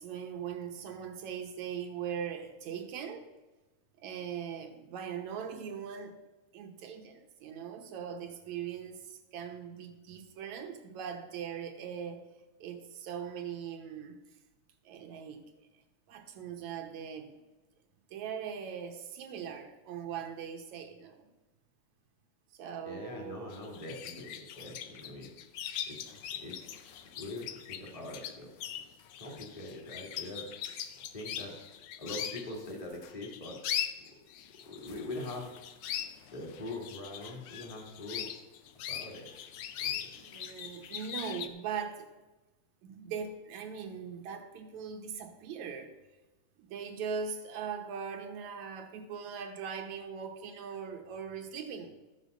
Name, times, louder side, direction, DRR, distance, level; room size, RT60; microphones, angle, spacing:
voice 1, 0.0-3.3 4.0-6.1 6.5-12.3 12.6-14.2 14.8-15.7 16.1-17.4 18.1-21.3 22.5-23.6 40.1-42.1 42.8-45.9 46.6-51.9, right 7 dB, 75° right, 2.4 m, -40 dB
voice 2, 22.8-25.3 25.9-28.5 29.2-30.5 31.1-31.6 32.0-33.6 34.7-35.5 36.3-38.3 38.9-39.3 39.8-40.1, left 2 dB, 10° left, 2.1 m, -43 dB
sound 1, 23.5-41.5, left 10 dB, 80° left, 1.2 m, -41 dB
13.5 x 6.5 x 6.6 m
omnidirectional pair, 3.4 m